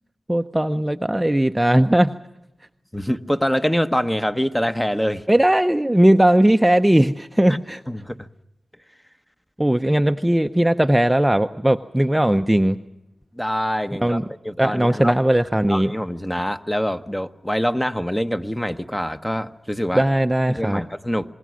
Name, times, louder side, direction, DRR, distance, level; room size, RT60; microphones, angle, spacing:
voice 1, 0.3-2.1 5.3-7.8 9.6-12.8 14.0-14.3 14.6-15.9 19.9-20.8, right 1 dB, 10° right, 7 dB, 0.7 m, -18 dB
voice 2, 2.9-5.3 7.5-7.6 7.9-8.3 13.3-14.2 14.4-15.1 15.7-20.0 20.5-21.3, equal, 5° left, 9 dB, 1.0 m, -25 dB
26.5 x 20.0 x 6.3 m, 0.90 s
cardioid pair, 60°, 0 cm